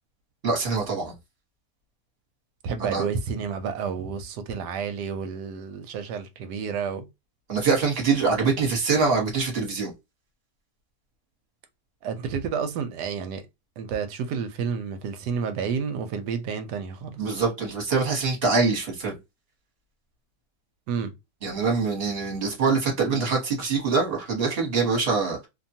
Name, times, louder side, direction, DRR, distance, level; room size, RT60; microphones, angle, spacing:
voice 1, 0.4-1.1 2.9-3.0 7.5-9.9 17.2-19.2 21.4-25.5, right 4 dB, 40° right, 1.1 m, -24 dB
voice 2, 2.6-7.1 12.0-13.4 13.8-17.4 20.9-21.1, right 6 dB, 75° right, 1.1 m, -30 dB
2.8 x 2.2 x 2.6 m
omnidirectional pair, 1.9 m